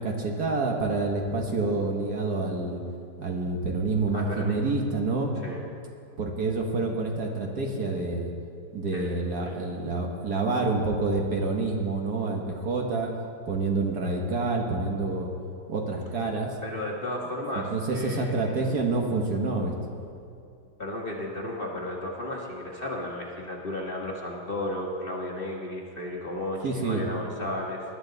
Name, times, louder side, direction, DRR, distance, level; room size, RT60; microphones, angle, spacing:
voice 1, 0.0-2.8 3.2-5.3 6.2-8.3 8.7-13.1 13.5-15.3 15.7-16.5 17.6-19.7 26.6-27.0, right 3 dB, 60° right, 1 dB, 1.9 m, -28 dB
voice 2, 4.1-4.7 5.4-5.6 8.9-9.1 9.4-9.6 16.6-18.8 20.8-27.8, left 1 dB, 30° left, -2 dB, 1.4 m, -34 dB
19.5 x 12.0 x 4.0 m, 2.5 s
omnidirectional pair, 2.0 m